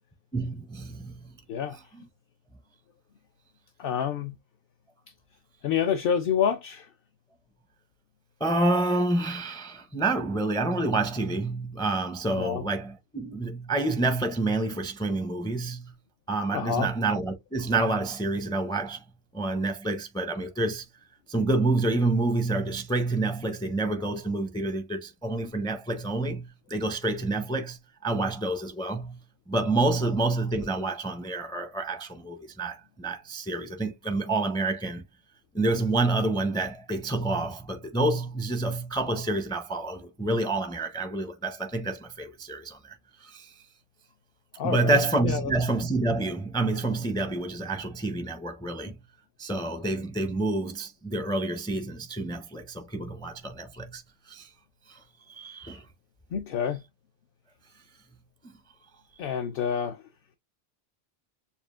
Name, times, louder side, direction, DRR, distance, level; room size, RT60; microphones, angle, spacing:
voice 1, 0.3-1.4 1.9-2.1 8.4-15.9 16.3-19.0 19.3-20.9 21.3-29.2 29.5-35.0 35.5-43.0 43.2-43.5 44.6-49.0 49.4-54.5 54.9-55.0 55.3-55.8 58.4-58.5, right 2 dB, 5° left, 0.4 m, -28 dB
voice 2, 3.8-4.3 5.6-6.9 12.4-12.6 16.5-16.9 44.6-45.5 56.3-56.8 59.2-60.0, left 8 dB, 65° left, 0.7 m, -28 dB
7.0 x 2.4 x 2.4 m
omnidirectional pair, 1.1 m